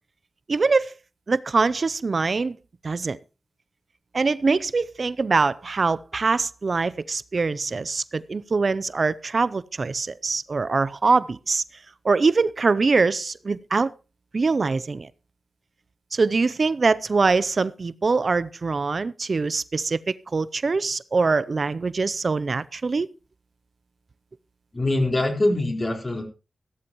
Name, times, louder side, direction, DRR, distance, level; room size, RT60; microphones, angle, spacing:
voice 1, 0.5-0.9 1.3-2.6 2.8-3.2 4.1-11.6 12.0-13.9 14.3-15.1 16.1-23.1, right 4 dB, 60° right, 0.5 m, -23 dB
voice 2, 24.7-26.2, left 2 dB, 40° left, 4.4 m, -23 dB
15.5 x 13.0 x 3.0 m
cardioid pair, 55°, 0 cm